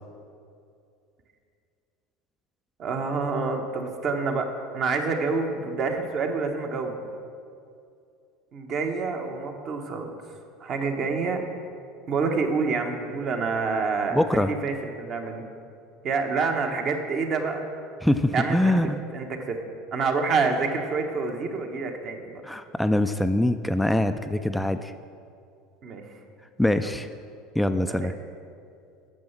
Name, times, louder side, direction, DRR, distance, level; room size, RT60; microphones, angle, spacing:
voice 1, 2.8-7.0 8.5-10.1 10.6-11.4 12.1-14.2 14.5-15.4 16.0-17.6 18.3-18.6 19.1-19.6 19.9-22.4 25.8-26.0 26.8-26.9 27.9-28.1, right 4 dB, 45° right, 4 dB, 1.3 m, -27 dB
voice 2, 14.1-14.5 18.0-19.0 22.4-24.9 26.6-27.1 27.6-28.1, left 1 dB, 5° left, 9 dB, 0.4 m, -23 dB
9.4 x 7.1 x 5.9 m, 2.4 s
figure-of-eight pair, 75°, 0 cm